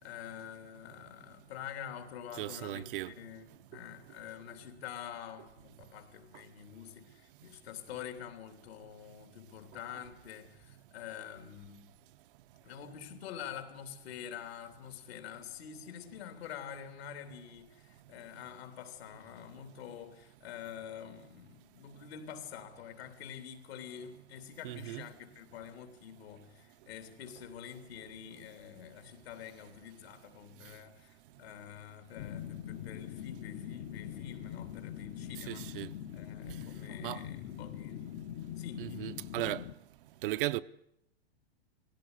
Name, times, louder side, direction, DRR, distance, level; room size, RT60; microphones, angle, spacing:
voice 1, 0.0-11.9 12.6-35.8 36.1-38.2 38.6-39.2, left 9 dB, 75° left, 3.3 m, -47 dB
voice 2, 2.3-3.1 24.6-25.1 35.3-35.9 36.5-36.6 37.0-37.3 38.8-39.7 40.2-40.6, right 16 dB, 60° right, 0.8 m, -36 dB
sound 1, 32.2-39.8, left 11 dB, 40° left, 1.0 m, -43 dB
20.0 x 17.0 x 9.8 m
supercardioid pair, 145°, 32 cm